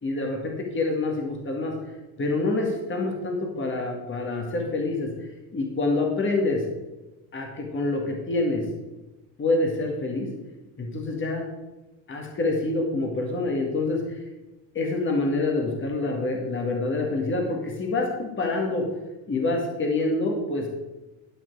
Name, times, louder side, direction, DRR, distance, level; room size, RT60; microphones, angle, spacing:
voice 1, 0.0-1.8 2.2-5.1 5.5-6.6 7.3-8.6 9.4-10.3 10.8-11.4 12.1-14.2 14.7-18.8 19.3-20.7, left 2 dB, 30° left, 1 dB, 2.0 m, -26 dB
11.5 x 6.0 x 4.7 m, 1.1 s
supercardioid pair, 95°, 39 cm